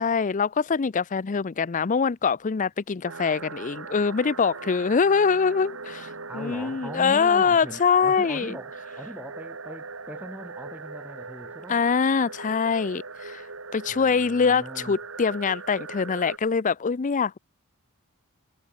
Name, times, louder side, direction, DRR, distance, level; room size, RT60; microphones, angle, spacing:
voice 1, 0.0-8.6 11.7-13.5 13.7-17.4, left 5 dB, 35° left, 0.5 m, -24 dB
sound 1, 3.0-16.4, right 4 dB, 65° right, 3.7 m, -40 dB
voice 2, 6.3-11.8 13.9-15.0, equal, 10° right, 2.3 m, -40 dB
head